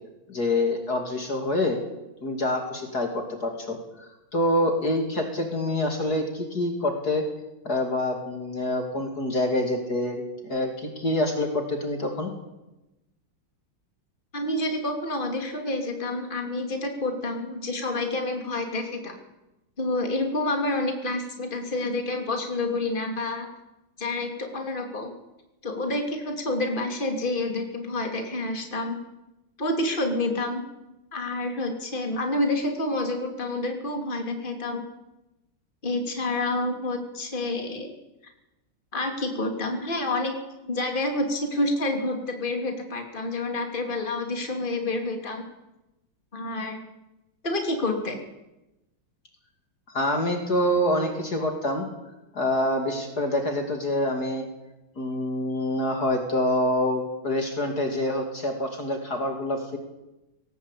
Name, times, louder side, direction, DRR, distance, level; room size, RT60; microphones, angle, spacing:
voice 1, 0.3-1.8 2.2-3.8 4.3-7.2 7.6-12.3 49.9-51.9 52.3-54.4 55.0-59.8, left 1 dB, 50° left, 4 dB, 3.1 m, -26 dB
voice 2, 14.3-19.1 19.8-23.5 24.0-25.1 25.6-29.0 29.6-30.6 31.1-34.8 35.8-37.9 38.9-40.3 40.7-45.4 46.3-46.8 47.4-48.2, left 2 dB, 25° left, 3 dB, 3.0 m, -28 dB
18.5 x 18.5 x 8.4 m, 0.98 s
omnidirectional pair, 2.2 m